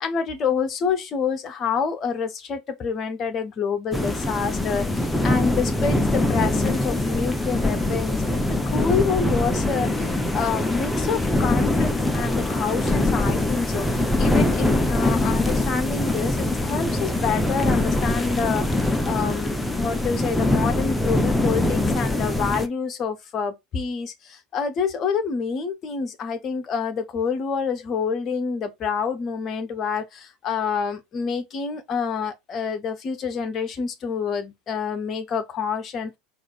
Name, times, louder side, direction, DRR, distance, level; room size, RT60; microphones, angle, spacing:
voice 1, 0.0-18.7 19.0-36.2, left 6 dB, 35° left, 1.1 m, -27 dB
sound 1, 3.9-22.7, left 1 dB, 5° left, 0.7 m, -23 dB
4.2 x 2.7 x 4.5 m
figure-of-eight pair, 75°, 0 cm